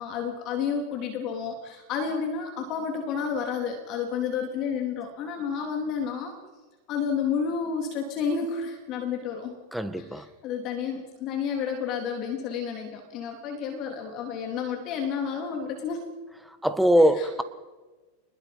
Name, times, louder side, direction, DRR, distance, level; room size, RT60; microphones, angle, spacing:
voice 1, 0.0-6.3 6.9-9.6 10.0-16.1 17.2-17.4, left 6 dB, 45° left, 3 dB, 3.6 m, -31 dB
voice 2, 9.7-10.3 16.5-17.4, equal, ahead, 10 dB, 1.7 m, -22 dB
28.0 x 20.5 x 5.6 m, 1.3 s
hypercardioid pair, 100°, 0 cm